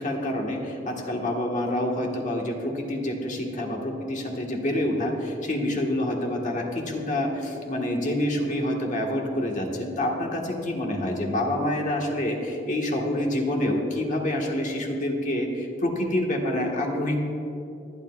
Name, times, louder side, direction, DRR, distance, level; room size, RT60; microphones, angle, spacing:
voice 1, 0.0-17.2, left 1 dB, 45° left, 0 dB, 1.5 m, -27 dB
24.0 x 9.6 x 2.4 m, 2.7 s
head